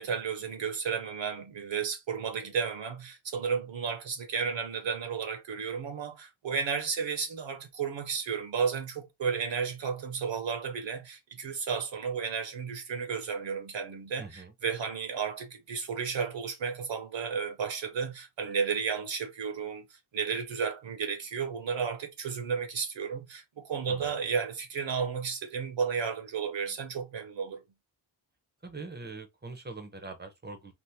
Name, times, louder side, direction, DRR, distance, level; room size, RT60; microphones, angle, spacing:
voice 1, 0.0-27.6, right 6 dB, 65° right, 0.7 m, -33 dB
voice 2, 14.2-14.5 23.9-24.1 28.6-30.7, right 3 dB, 20° right, 0.6 m, -43 dB
3.5 x 2.5 x 2.6 m
wide cardioid pair, 145°, 49 cm